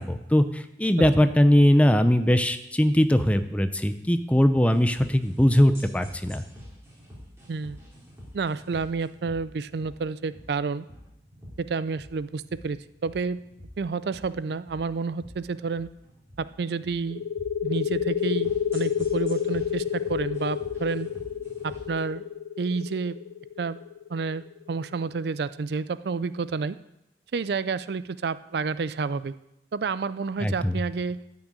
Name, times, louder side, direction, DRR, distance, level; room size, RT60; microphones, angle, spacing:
voice 1, 0.0-6.4 30.4-30.8, equal, 5° left, 10 dB, 0.5 m, -21 dB
sound 1, 4.7-22.0, equal, 15° right, 3.8 m, -47 dB
voice 2, 8.3-10.9 11.6-13.4 13.8-15.9 16.4-17.2 17.6-21.1 21.6-22.3 22.6-23.2 23.6-23.8 24.1-26.8 27.3-29.3 29.7-31.2, right 4 dB, 60° right, 15 dB, 0.4 m, -30 dB
sound 2, 17.1-24.5, left 9 dB, 55° left, 0.5 m, -29 dB
12.5 x 6.3 x 8.8 m, 0.86 s
head